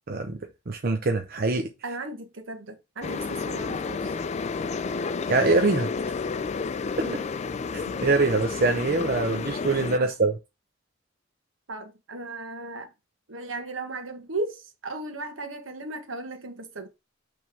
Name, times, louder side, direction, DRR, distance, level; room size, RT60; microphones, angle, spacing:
voice 1, 0.1-0.4 0.7-1.7 5.3-5.9 7.0-7.1 7.7-10.3, right 3 dB, 50° right, 0.7 m, -24 dB
voice 2, 1.8-4.2 4.5-4.6 7.0-7.3 7.9-8.0 8.9-9.1 10.0-10.1 11.7-12.9 13.3-16.9, right 2 dB, 80° right, 1.4 m, -36 dB
sound 1, 3.0-10.0, left 4 dB, 35° left, 0.4 m, -31 dB
6.0 x 3.5 x 4.5 m
head